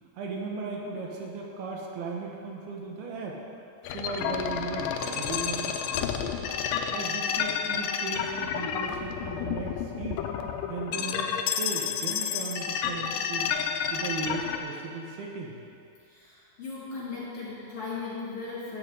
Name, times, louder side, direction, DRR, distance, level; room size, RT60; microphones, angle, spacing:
voice 1, 0.2-3.4 3.9-6.3 6.9-10.2 10.7-13.5 13.9-15.6, right 3 dB, 80° right, -1 dB, 3.0 m, -36 dB
sound 1, 3.8-14.6, left 7 dB, 85° left, 2.0 m, -30 dB
voice 2, 16.1-18.8, left 4 dB, 40° left, -10 dB, 3.1 m, -37 dB
15.0 x 8.4 x 3.9 m, 2.6 s
omnidirectional pair, 4.5 m